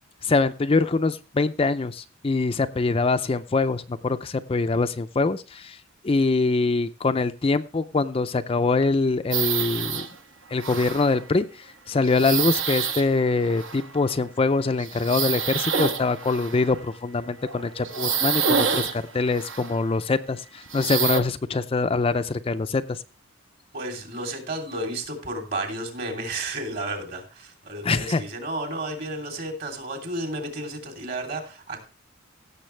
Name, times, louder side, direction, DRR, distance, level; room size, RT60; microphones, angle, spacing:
voice 1, 0.2-5.8 6.0-10.1 10.5-11.5 11.9-23.0 27.8-28.2, left 3 dB, 30° left, 9 dB, 0.4 m, -24 dB
sound 1, 9.3-10.1 10.6-11.2 12.0-14.2 14.8-16.8 17.4-19.8 20.6-21.2, right 6 dB, 70° right, 1.2 m, -27 dB
voice 2, 23.7-31.8, right 2 dB, 50° right, 3 dB, 3.1 m, -32 dB
16.5 x 6.9 x 3.2 m, 0.33 s
head